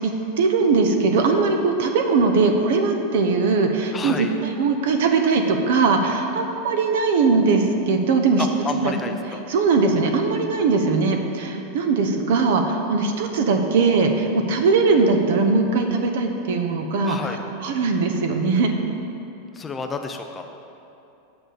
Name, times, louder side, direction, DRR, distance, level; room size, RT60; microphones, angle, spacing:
voice 1, 0.0-4.3 4.6-8.4 8.8-8.9 9.5-17.2 17.6-18.7, right 4 dB, 65° right, 5 dB, 0.9 m, -20 dB
voice 2, 3.9-4.3 8.4-9.4 17.0-17.4 19.5-20.4, left 4 dB, 10° left, 5 dB, 0.4 m, -30 dB
7.9 x 6.0 x 6.7 m, 2.8 s
supercardioid pair, 175°, 0 cm